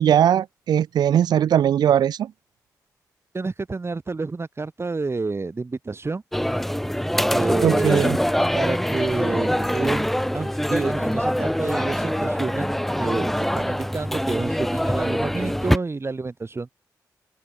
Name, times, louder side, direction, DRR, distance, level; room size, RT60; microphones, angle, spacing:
voice 1, 0.0-2.3 7.6-8.2, right 10 dB, 90° right, 0.7 m, -19 dB
voice 2, 3.3-6.2 7.3-8.1 8.5-16.7, right 3 dB, 40° right, 4.9 m, -29 dB
sound 1, 6.3-15.8, equal, 5° left, 0.4 m, -24 dB
open air
cardioid pair, 60°, 7 cm